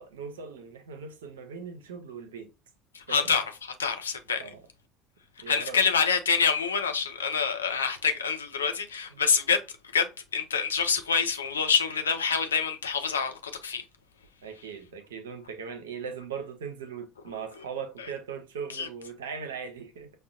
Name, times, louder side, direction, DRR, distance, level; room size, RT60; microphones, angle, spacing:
voice 1, 0.0-2.5 3.1-3.3 4.4-4.6 5.4-5.8 9.1-9.2 14.4-20.1, right 6 dB, 80° right, 0.6 m, -39 dB
voice 2, 2.9-4.4 5.5-9.6 9.9-13.8 18.7-18.9, left 6 dB, 90° left, 0.5 m, -26 dB
5.7 x 2.1 x 2.5 m
hypercardioid pair, 65°, 0 cm